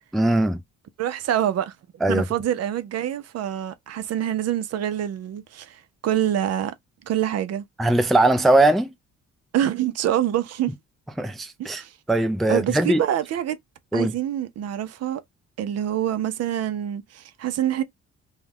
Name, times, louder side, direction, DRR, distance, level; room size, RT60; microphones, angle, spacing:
voice 1, 0.1-0.6 2.0-2.2 7.8-8.9 11.2-11.8 12.1-13.0 13.9-14.1, right 1 dB, ahead, 0.3 m, -20 dB
voice 2, 1.0-1.7 2.1-6.7 7.1-7.6 9.5-10.7 11.6-11.9 12.5-13.6 13.9-15.2 15.6-17.8, right 11 dB, 55° right, 0.5 m, -26 dB
2.3 x 2.1 x 3.3 m
cardioid pair, 90°, 30 cm